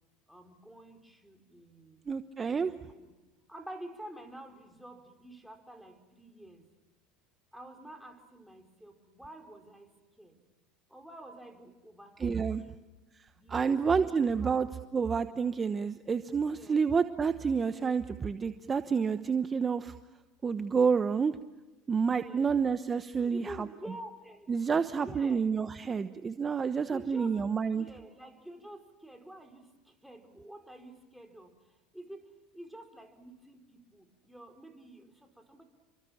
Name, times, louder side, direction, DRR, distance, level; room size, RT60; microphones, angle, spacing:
voice 1, 0.3-2.0 2.4-2.6 2.9-3.1 3.5-6.7 7.5-9.9 10.2-10.4 10.9-12.8 13.4-14.6 16.5-16.9 22.1-22.7 23.2-24.5 25.0-25.5 26.9-27.4 27.7-29.7 30.0-31.5 31.9-35.6, right 1 dB, ahead, 4 dB, 4.8 m, -49 dB
voice 2, 2.1-2.7 12.2-12.6 13.2-14.7 14.9-19.9 20.4-21.4 21.9-23.7 24.5-27.8, right 6 dB, 25° right, 10 dB, 1.1 m, -29 dB
29.0 x 24.5 x 7.3 m, 1.1 s
hypercardioid pair, 90°, 0 cm